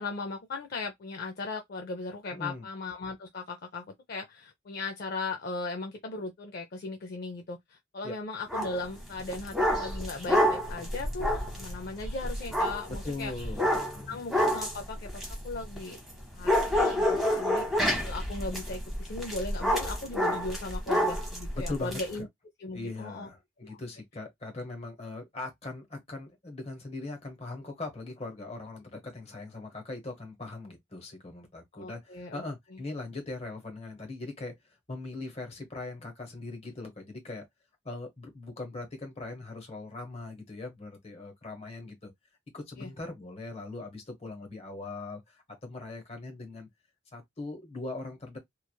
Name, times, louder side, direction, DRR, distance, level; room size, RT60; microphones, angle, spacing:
voice 1, 0.0-13.3 14.1-16.0 16.3-22.3 22.6-23.3 23.6-23.8 31.7-32.4 32.7-32.8 42.8-42.9, left 3 dB, 50° left, 0.4 m, -38 dB
voice 2, 2.3-2.7 8.0-8.2 13.0-13.6 13.9-14.2 21.5-22.2 22.7-34.5 34.9-37.5 37.8-42.1 42.5-46.7 47.1-48.4, left 2 dB, 35° left, 1.0 m, -40 dB
sound 1, 8.5-8.8 9.2-16.1 16.4-22.0, equal, ahead, 0.9 m, -28 dB
3.0 x 2.3 x 2.2 m
head